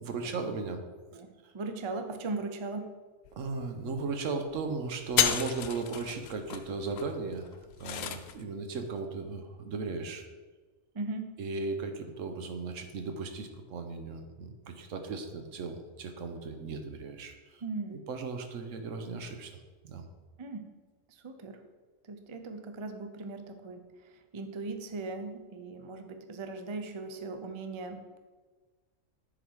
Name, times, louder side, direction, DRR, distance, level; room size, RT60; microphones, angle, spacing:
voice 1, 0.0-0.8 1.4-1.5 3.4-7.5 7.8-10.2 11.4-17.6 17.9-19.6 19.8-20.1, right 4 dB, 75° right, 6 dB, 1.2 m, -36 dB
voice 2, 1.1-2.9 10.9-11.3 17.6-18.0 20.4-20.6 21.1-21.6 22.0-28.2, right 3 dB, 40° right, 7 dB, 0.4 m, -39 dB
sound 1, 3.2-3.3 3.6-4.0 4.4-4.7 5.0-8.4, left 9 dB, 85° left, 1.0 m, -32 dB
9.9 x 4.1 x 4.6 m, 1.3 s
omnidirectional pair, 1.3 m